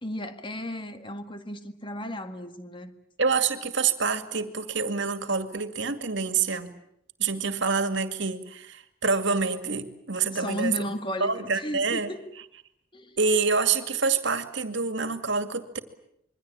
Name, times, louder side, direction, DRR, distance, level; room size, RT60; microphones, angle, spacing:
voice 1, 0.0-2.9 10.3-12.3 12.9-13.2, equal, 25° left, 9 dB, 1.8 m, -34 dB
voice 2, 3.2-6.7 7.2-10.7 11.2-12.1 13.2-15.8, right 4 dB, 60° right, 10 dB, 2.3 m, -27 dB
27.0 x 23.0 x 8.8 m, 0.72 s
head